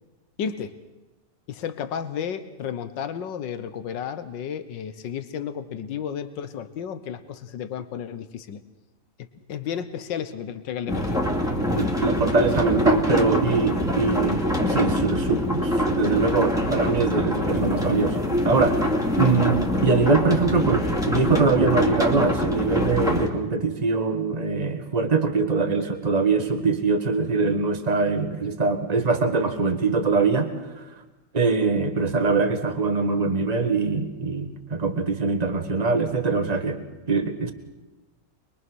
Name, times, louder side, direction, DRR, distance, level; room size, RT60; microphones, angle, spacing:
voice 1, 0.4-0.8 1.5-8.6 9.5-11.2, left 8 dB, 90° left, 11 dB, 1.8 m, -32 dB
sound 1, 10.9-23.3, left 1 dB, ahead, 2.4 m, -24 dB
voice 2, 11.8-18.9 19.2-30.8 31.3-37.5, right 4 dB, 25° right, 6 dB, 1.6 m, -23 dB
24.0 x 22.5 x 6.3 m, 1.1 s
omnidirectional pair, 1.9 m